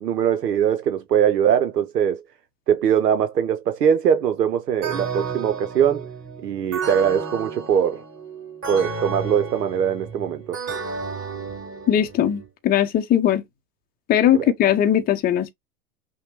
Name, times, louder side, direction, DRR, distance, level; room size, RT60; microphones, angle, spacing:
voice 1, 0.0-2.2 2.7-6.1 6.4-8.0 8.7-10.6 14.3-14.5, right 8 dB, 90° right, 0.7 m, -21 dB
sound 1, 4.8-12.5, right 5 dB, 30° right, 2.9 m, -32 dB
voice 2, 11.9-13.4 14.1-15.5, left 10 dB, 20° left, 0.6 m, -19 dB
5.8 x 2.2 x 3.0 m
hypercardioid pair, 105°, 47 cm